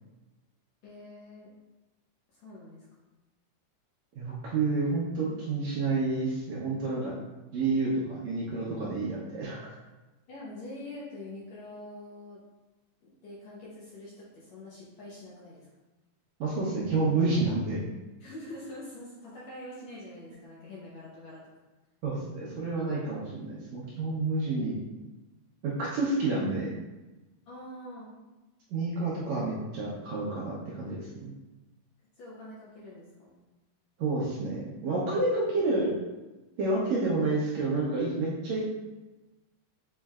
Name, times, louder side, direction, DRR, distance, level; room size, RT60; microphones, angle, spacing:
voice 1, 0.8-1.5 2.3-2.9 10.3-12.4 13.0-15.7 18.2-21.5 27.5-28.1 32.2-33.4, left 1 dB, 70° left, -6 dB, 1.7 m, -45 dB
voice 2, 4.2-7.1 7.5-9.7 16.4-17.9 22.0-24.8 25.6-26.7 28.7-31.3 34.0-35.9 36.6-38.6, right 3 dB, 75° right, -6 dB, 1.7 m, -29 dB
7.3 x 3.1 x 2.3 m, 1.1 s
omnidirectional pair, 3.9 m